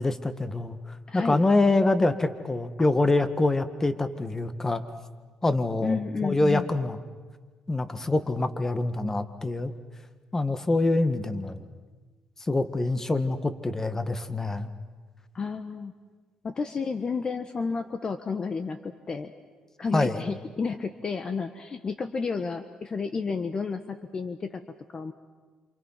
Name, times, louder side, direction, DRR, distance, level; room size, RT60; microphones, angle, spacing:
voice 1, 0.0-4.8 5.4-7.0 7.7-9.7 10.3-11.6 12.4-14.7 19.9-20.2, left 2 dB, 20° left, 10 dB, 1.8 m, -25 dB
voice 2, 1.1-1.4 5.8-6.7 15.3-15.9 16.4-19.3 19.8-24.6 24.9-25.1, left 5 dB, 40° left, 9 dB, 1.3 m, -31 dB
28.0 x 28.0 x 5.9 m, 1.4 s
cardioid pair, 90°, 2 cm